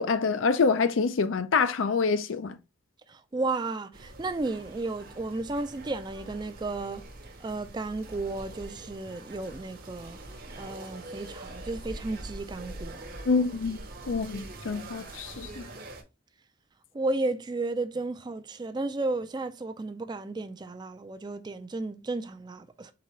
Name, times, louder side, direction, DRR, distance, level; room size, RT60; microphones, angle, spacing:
voice 1, 0.0-2.6 13.2-13.8 14.1-15.7, left 4 dB, 90° left, 0.5 m, -26 dB
voice 2, 3.1-7.0 7.4-10.2 10.6-13.0 16.9-22.9, right 2 dB, 20° right, 0.3 m, -33 dB
sound 1, 3.9-16.0, right 2 dB, 50° right, 0.8 m, -44 dB
3.9 x 3.8 x 3.0 m
head